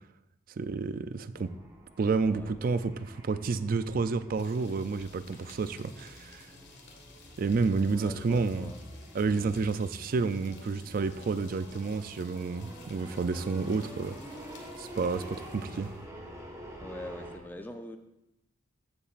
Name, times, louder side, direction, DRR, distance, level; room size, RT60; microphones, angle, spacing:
voice 1, 0.6-1.5 2.0-2.9 3.3-6.5 7.4-8.7 9.1-14.2 14.8-15.9, right 4 dB, 45° right, 13 dB, 0.4 m, -30 dB
voice 2, 1.3-1.7 2.3-2.8 7.8-8.8 15.5-15.9 16.8-18.0, left 1 dB, 10° left, 5 dB, 0.5 m, -44 dB
sound 1, 1.4-17.4, right 1 dB, 15° right, 1.2 m, -47 dB
sound 2, 4.4-16.0, left 5 dB, 60° left, 1.5 m, -56 dB
14.5 x 7.0 x 2.5 m, 0.88 s
head